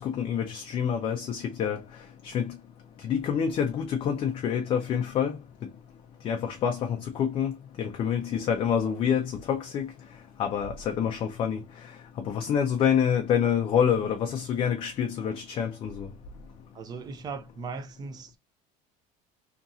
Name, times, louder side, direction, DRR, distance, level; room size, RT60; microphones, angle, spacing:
voice 1, 0.0-1.8 2.2-2.5 3.0-5.4 6.2-9.9 10.4-11.6 12.3-16.1, left 8 dB, 30° left, 0.4 m, -27 dB
voice 2, 16.7-18.4, right 4 dB, 25° right, 0.5 m, -38 dB
2.9 x 2.7 x 2.3 m
cardioid pair, 160°, 16 cm